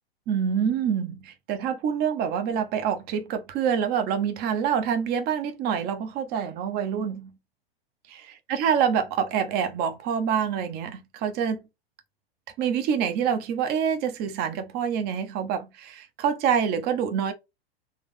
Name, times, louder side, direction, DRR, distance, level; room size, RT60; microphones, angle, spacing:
voice 1, 0.3-7.3 8.1-11.6 12.6-17.3, right 7 dB, 35° right, 1.0 m, -26 dB
3.7 x 3.4 x 3.6 m
figure-of-eight pair, 95°, 30 cm